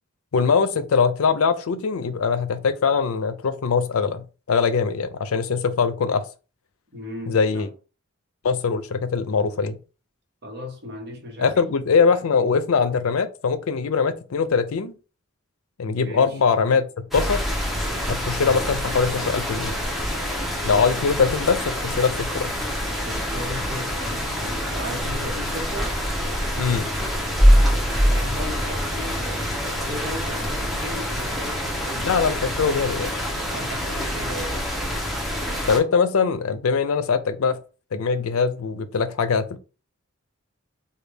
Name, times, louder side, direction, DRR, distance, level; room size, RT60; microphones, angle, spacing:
voice 1, 0.3-6.2 7.3-7.7 8.4-9.8 11.4-14.9 15.8-16.9 17.1-17.4 18.1-19.8 20.6-22.5 26.6-26.9 32.0-33.1 35.7-37.6 37.9-39.6, left 5 dB, 80° left, 0.5 m, -22 dB
voice 2, 6.9-7.7 10.4-11.6 15.9-16.4 20.6-20.8 23.0-26.0 27.9-32.2 33.5-34.6, left 1 dB, 55° right, 1.1 m, -36 dB
sound 1, 17.1-35.8, equal, ahead, 0.6 m, -25 dB
3.3 x 2.3 x 3.3 m
head